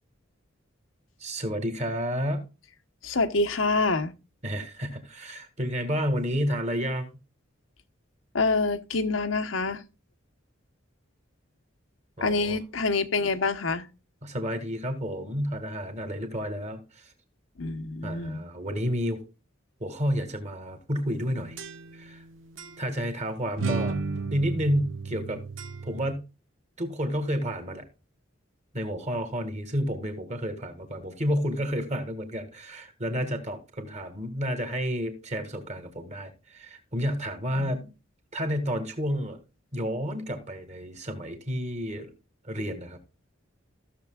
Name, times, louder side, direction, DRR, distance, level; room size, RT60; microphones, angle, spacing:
voice 1, 1.2-2.4 4.4-7.1 12.2-12.6 14.2-17.1 18.0-19.2 19.8-21.6 21.9-22.2 22.8-24.0 24.3-25.4 25.8-26.2 26.8-27.9 28.7-37.8 38.3-39.4 39.7-42.1 42.4-43.0, equal, 35° right, 1.9 m, -30 dB
voice 2, 3.0-4.1 8.3-9.8 12.2-13.9 17.6-18.4 37.5-37.9, left 3 dB, 85° left, 1.0 m, -26 dB
sound 1, 21.1-22.2 22.6-22.7 23.6-26.1, right 4 dB, 80° right, 1.3 m, -34 dB
15.0 x 6.8 x 2.3 m
head